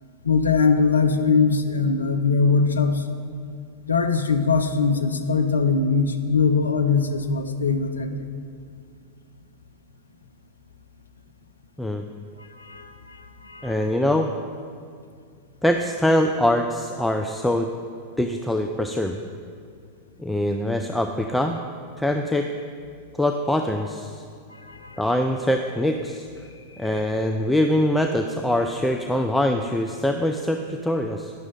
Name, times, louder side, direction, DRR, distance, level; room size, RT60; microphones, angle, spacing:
voice 1, 0.2-3.0 3.9-8.3 12.6-13.8 24.6-25.0, left 4 dB, 75° left, 7 dB, 0.5 m, -21 dB
voice 2, 13.6-14.3 15.6-17.7 18.2-19.2 20.2-21.6 22.0-22.5 23.2-24.2 25.0-26.3 26.8-31.3, left 1 dB, 5° left, 4 dB, 0.3 m, -23 dB
9.6 x 6.1 x 3.7 m, 2.2 s
figure-of-eight pair, 90°, 0 cm